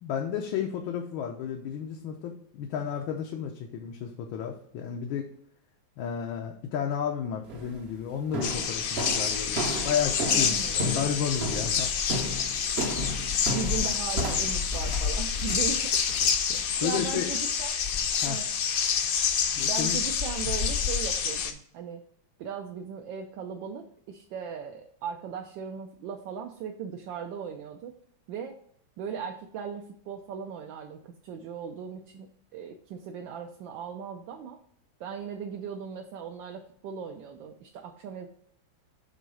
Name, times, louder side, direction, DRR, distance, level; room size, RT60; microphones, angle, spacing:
voice 1, 0.0-5.3 6.0-11.9 16.5-17.3 18.1-18.4 19.5-20.0, left 8 dB, 80° left, 2 dB, 1.5 m, -32 dB
sound 1, 7.5-7.8 8.3-16.3, equal, 50° right, 0.7 m, -34 dB
sound 2, 8.4-21.5, left 7 dB, 65° left, 0.9 m, -28 dB
voice 2, 10.3-10.8 13.1-13.2 13.5-16.0 16.8-17.7 18.2-18.5 19.7-22.0 22.4-27.9 28.3-28.6 29.0-34.6 35.0-38.3, right 7 dB, 75° right, 3 dB, 1.3 m, -38 dB
6.6 x 3.9 x 4.8 m, 0.66 s
omnidirectional pair, 2.1 m